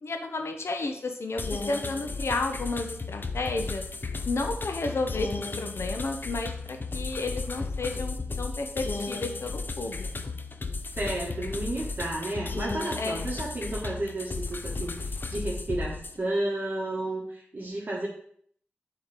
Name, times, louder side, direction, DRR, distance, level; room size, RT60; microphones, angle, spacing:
voice 1, 0.0-3.9 4.3-5.3 5.6-10.3 13.0-13.4, left 3 dB, 80° left, 5 dB, 1.0 m, -32 dB
sound 1, 1.4-16.2, left 3 dB, 50° left, 0.6 m, -34 dB
voice 2, 10.9-18.1, right 1 dB, 45° right, -5 dB, 1.7 m, -32 dB
8.2 x 4.0 x 5.1 m, 0.62 s
wide cardioid pair, 80°, 4 cm